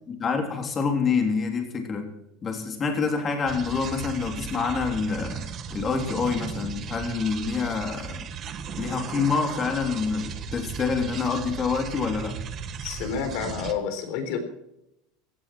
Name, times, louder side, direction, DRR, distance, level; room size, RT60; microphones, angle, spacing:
voice 1, 0.1-2.1 2.4-8.3 8.8-12.4, left 5 dB, 20° left, 4 dB, 3.4 m, -27 dB
sound 1, 3.5-13.7, right 7 dB, 30° right, 1.4 m, -36 dB
voice 2, 12.8-14.4, left 6 dB, 55° left, 7 dB, 3.9 m, -29 dB
16.5 x 14.0 x 4.6 m, 0.83 s
supercardioid pair, 155°, 0 cm